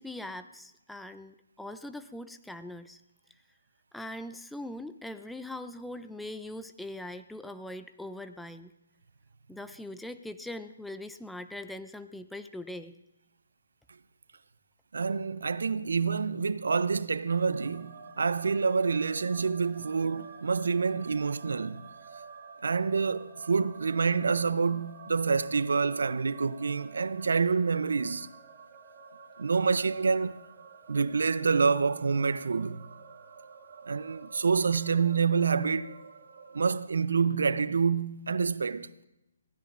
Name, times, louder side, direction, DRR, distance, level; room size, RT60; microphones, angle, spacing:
voice 1, 0.0-3.0 3.9-8.7 9.5-13.0, left 1 dB, ahead, 0.4 m, -41 dB
voice 2, 14.9-21.8 22.6-28.3 29.4-30.4 30.9-32.8 33.9-35.9 36.5-38.9, right 5 dB, 70° right, 0.5 m, -27 dB
sound 1, 17.3-36.6, right 6 dB, 40° right, 1.7 m, -50 dB
24.0 x 15.5 x 2.5 m
figure-of-eight pair, 140°, 0 cm